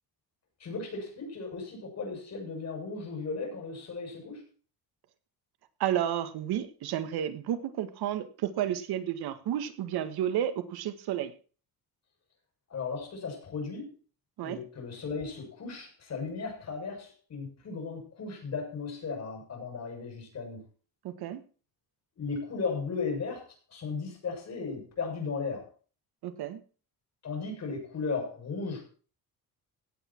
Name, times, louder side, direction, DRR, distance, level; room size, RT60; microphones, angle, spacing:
voice 1, 0.6-4.4 12.7-13.9 14.4-20.6 22.2-25.6 27.2-28.9, left 4 dB, 45° left, 1 dB, 7.6 m, -36 dB
voice 2, 5.8-11.3 14.4-14.6 21.0-21.4 26.2-26.6, right 11 dB, 80° right, 10 dB, 1.8 m, -31 dB
17.0 x 8.6 x 4.6 m, 0.38 s
cardioid pair, 140°, 38 cm